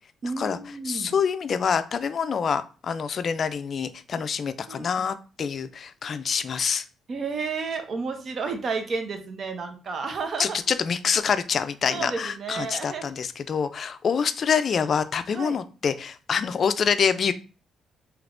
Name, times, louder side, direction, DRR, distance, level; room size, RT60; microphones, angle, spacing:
voice 1, 0.2-1.1 4.7-4.9 7.1-10.6 11.9-13.1 15.3-15.6, right 4 dB, 50° right, 6 dB, 0.6 m, -31 dB
voice 2, 0.9-6.8 10.4-17.3, left 6 dB, 50° left, 12 dB, 0.3 m, -26 dB
3.3 x 2.9 x 2.5 m, 0.35 s
cardioid pair, 90°, 0 cm